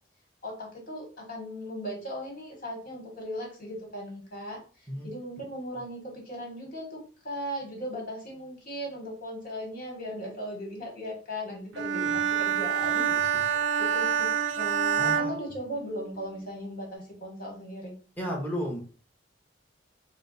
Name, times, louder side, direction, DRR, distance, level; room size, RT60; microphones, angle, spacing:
voice 1, 0.4-4.6 5.0-7.0 7.2-13.2 13.4-14.3 14.6-18.0, equal, 50° left, -1 dB, 1.8 m, -38 dB
Bowed string instrument, 11.7-16.2, right 8 dB, 80° right, 0.4 m, -27 dB
voice 2, 13.2-13.8 15.0-15.3 18.2-18.8, equal, 10° left, -2 dB, 1.2 m, -34 dB
4.2 x 2.2 x 4.1 m, 0.38 s
head